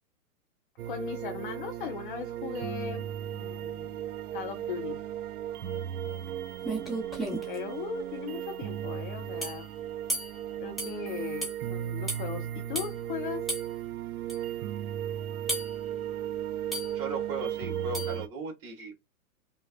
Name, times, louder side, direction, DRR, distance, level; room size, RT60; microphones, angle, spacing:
sound 1, 0.8-18.3, right 10 dB, 85° right, 0.6 m, -36 dB
voice 1, 0.9-4.0 4.3-5.0 7.5-9.7 10.6-13.5, left 8 dB, 35° left, 0.6 m, -38 dB
sound 2, 6.3-6.4 6.6-7.6 9.4-9.6 10.1-10.4 10.8-11.0 11.4-11.6 12.1-12.2 12.7-12.9 13.5-13.7 14.3-14.4 15.5-15.8 16.7-17.0 17.9-18.2, right 1 dB, ahead, 1.2 m, -33 dB
voice 2, 16.9-18.9, right 4 dB, 30° right, 2.3 m, -36 dB
5.5 x 2.3 x 2.5 m
hypercardioid pair, 135°, 43 cm